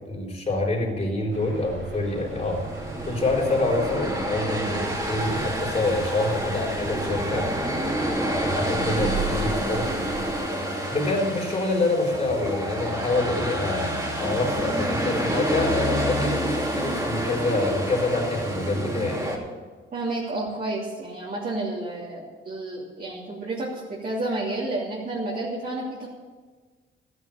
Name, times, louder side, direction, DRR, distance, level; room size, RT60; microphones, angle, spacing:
voice 1, 0.1-2.6 3.1-7.5 8.3-10.0 10.9-13.9 14.2-19.3, left 2 dB, 30° left, -1 dB, 4.2 m, -26 dB
sound 1, 1.3-10.3, right 4 dB, 80° right, 5.0 m, -37 dB
sound 2, 2.1-19.4, equal, 15° right, 2.8 m, -28 dB
voice 2, 19.9-26.1, right 2 dB, 45° right, -6 dB, 3.0 m, -30 dB
13.0 x 9.7 x 7.1 m, 1.4 s
cardioid pair, 100°, 21 cm